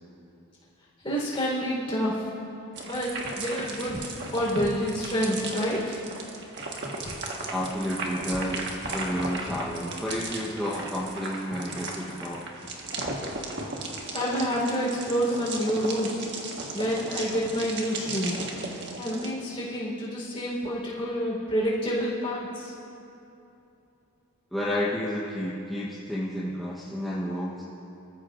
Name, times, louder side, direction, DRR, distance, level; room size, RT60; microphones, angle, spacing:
voice 1, 1.0-2.3 2.8-6.0 14.1-16.2 16.7-18.5 19.0-22.7, equal, 25° left, -6 dB, 4.0 m, -28 dB
sound 1, 2.7-19.3, right 2 dB, 55° right, 1.5 m, -36 dB
voice 2, 7.5-8.6 8.9-12.4 24.5-27.6, equal, ahead, -6 dB, 1.0 m, -31 dB
25.5 x 14.0 x 2.5 m, 2.8 s
head